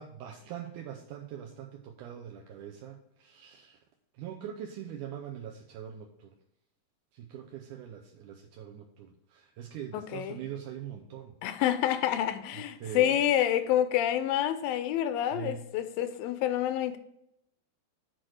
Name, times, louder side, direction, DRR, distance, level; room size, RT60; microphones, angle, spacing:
voice 1, 0.0-3.8 4.2-6.3 7.1-11.3 12.8-13.1 15.3-15.7, right 9 dB, 80° right, 1.9 m, -42 dB
voice 2, 9.9-10.4 11.4-17.0, left 11 dB, 85° left, 2.3 m, -28 dB
7.7 x 4.2 x 6.4 m
omnidirectional pair, 4.3 m